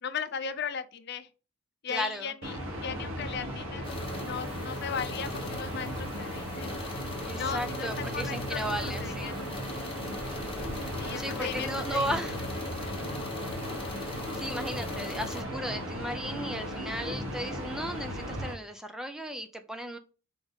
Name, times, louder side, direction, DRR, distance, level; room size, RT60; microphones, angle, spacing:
voice 1, 0.0-1.3 1.8-3.9 4.2-6.8 7.4-8.7 9.0-9.4 11.0-12.1 14.3-14.6, left 7 dB, 50° left, 10 dB, 0.6 m, -37 dB
voice 2, 1.9-2.3 7.2-9.3 11.2-12.4 14.3-20.0, equal, 5° right, 7 dB, 0.4 m, -35 dB
sound 1, 2.4-18.5, equal, 70° right, 1.6 m, -36 dB
sound 2, 3.8-15.4, left 2 dB, 25° left, 1.0 m, -41 dB
4.8 x 4.0 x 5.1 m, 0.36 s
head